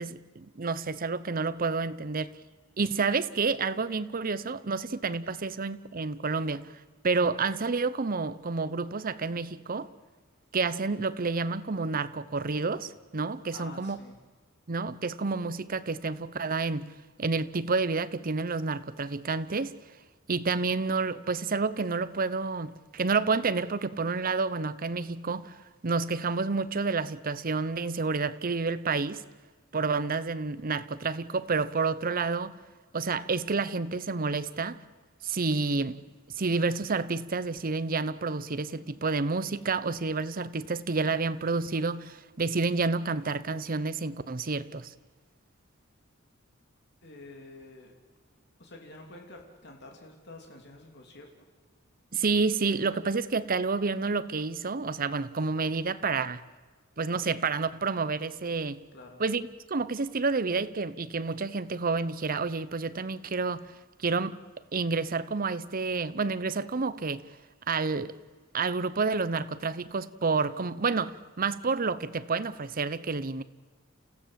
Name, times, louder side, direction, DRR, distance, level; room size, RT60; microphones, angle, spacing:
voice 1, 0.0-2.3 2.8-6.7 7.0-9.9 10.5-14.0 14.7-16.9 17.2-19.7 20.3-25.6 25.8-29.2 29.7-32.5 32.9-34.8 35.2-36.0 36.4-44.9 52.1-56.4 57.0-58.8 59.2-63.7 64.0-64.4 64.7-67.2 67.7-68.1 68.5-73.4, right 4 dB, 45° right, 0.8 m, -29 dB
voice 2, 13.5-14.2 47.0-47.9 48.6-51.3 58.9-59.2, left 2 dB, 55° left, 3.0 m, -48 dB
29.0 x 16.0 x 7.5 m
head